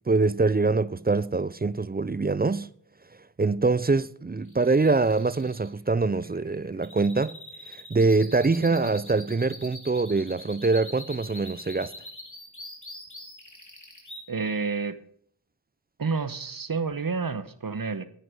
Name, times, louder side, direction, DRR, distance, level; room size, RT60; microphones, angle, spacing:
voice 1, 0.0-2.7 3.4-7.4 7.7-11.9, right 3 dB, 20° right, 0.4 m, -24 dB
sound 1, 4.4-14.2, left 1 dB, 40° left, 3.6 m, -44 dB
voice 2, 8.6-8.9 14.3-15.0 16.0-18.1, right 4 dB, 45° right, 1.0 m, -30 dB
10.0 x 9.3 x 5.2 m
wide cardioid pair, 45°, 46 cm